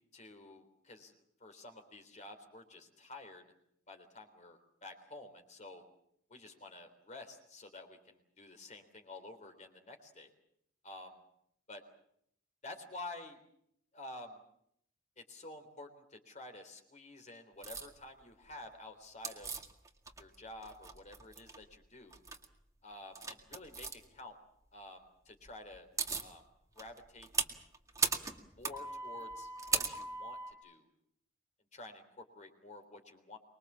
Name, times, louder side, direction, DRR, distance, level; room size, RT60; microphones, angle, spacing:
voice 1, 0.1-1.1 1.4-3.4 3.9-5.8 6.3-10.3 10.8-11.2 11.7-11.8 12.6-13.4 13.9-14.4 15.2-19.5 20.2-22.2 22.8-24.4 24.7-25.9 26.2-26.4 26.8-27.3 28.5-30.9 31.7-33.4, left 2 dB, 35° left, 6 dB, 3.6 m, -50 dB
sound 1, 17.6-17.9 19.2-20.3 20.6-21.6 22.1-22.4 23.1-23.9 25.5-25.6 25.7-26.3 26.8-30.5, right 4 dB, 15° right, 2.1 m, -37 dB
25.0 x 22.0 x 7.4 m, 0.73 s
head